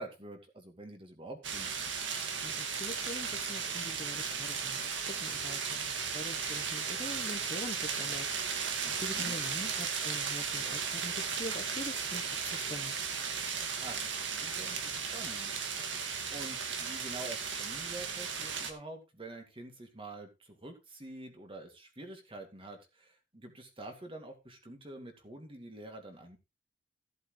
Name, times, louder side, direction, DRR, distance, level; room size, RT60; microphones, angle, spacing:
voice 1, 0.0-1.7 8.8-9.3 13.8-15.8 16.3-26.4, right 2 dB, 30° right, 4 dB, 2.4 m, -47 dB
sound 1, 1.4-18.7, right 6 dB, 80° right, 1.9 m, -35 dB
voice 2, 2.4-4.9 5.2-12.9, left 1 dB, 30° left, 4 dB, 1.0 m, -44 dB
15.0 x 7.9 x 3.2 m, 0.26 s
head